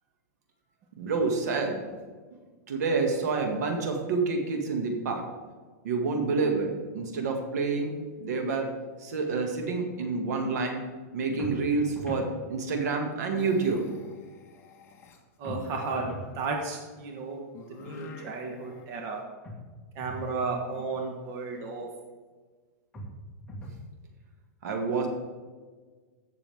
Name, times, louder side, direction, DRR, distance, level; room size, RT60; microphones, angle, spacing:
voice 1, 1.0-1.8 2.7-5.2 5.8-7.9 8.2-8.7 9.0-10.8 11.1-13.9 24.6-25.1, right 4 dB, 70° right, 3 dB, 2.1 m, -28 dB
sound 1, 9.7-10.2 10.5-11.0 13.2-15.9 17.5-18.9, left 3 dB, 25° left, 1.3 m, -46 dB
sound 2, 11.4-12.3 15.4-16.3 19.4-20.3 22.9-23.9, equal, 10° left, 1.8 m, -40 dB
voice 2, 15.4-16.1 16.3-17.4 17.7-19.2 19.9-21.9, right 4 dB, 35° right, 1 dB, 1.3 m, -33 dB
15.5 x 6.8 x 3.6 m, 1.4 s
supercardioid pair, 155°, 9 cm